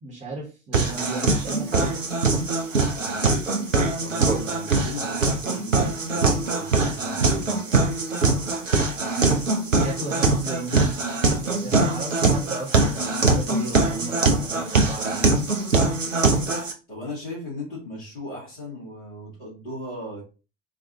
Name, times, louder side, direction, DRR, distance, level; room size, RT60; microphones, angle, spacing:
voice 1, 0.0-2.0 9.8-11.0 11.4-15.3, right 2 dB, 20° right, 1.1 m, -35 dB
sound 1, 0.7-16.7, right 3 dB, 90° right, 0.6 m, -22 dB
voice 2, 4.0-7.6 16.9-20.2, left 1 dB, 75° left, 2.1 m, -37 dB
4.0 x 2.6 x 2.7 m
figure-of-eight pair, 75°, 37 cm